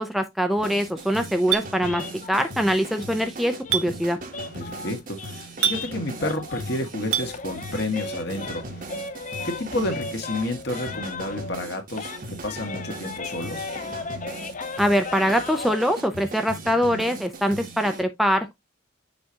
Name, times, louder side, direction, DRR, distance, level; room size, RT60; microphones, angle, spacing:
voice 1, 0.0-4.2 14.8-18.6, equal, ahead, 0.5 m, -23 dB
sound 1, 0.6-18.0, right 2 dB, 45° right, 1.1 m, -39 dB
Chink clink, 1.5-1.7 3.7-3.9 5.6-5.8 7.1-7.3, right 10 dB, 80° right, 0.9 m, -23 dB
sound 2, 1.8-6.9 7.2-11.7 11.9-15.8, left 4 dB, 40° left, 0.6 m, -37 dB
voice 2, 4.5-9.0 9.4-13.7, left 1 dB, 55° left, 1.7 m, -30 dB
7.1 x 4.8 x 2.8 m
head